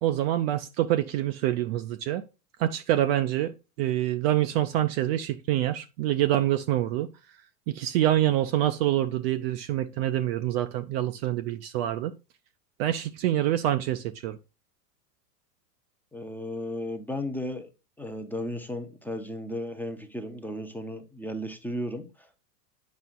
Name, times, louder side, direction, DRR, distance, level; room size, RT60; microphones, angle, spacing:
voice 1, 0.0-2.2 2.6-7.1 7.7-12.1 12.8-14.4, right 13 dB, 40° right, 0.5 m, -26 dB
voice 2, 16.1-17.7 18.0-22.4, left 1 dB, 5° left, 0.6 m, -35 dB
9.3 x 5.5 x 2.2 m
hypercardioid pair, 100°, 49 cm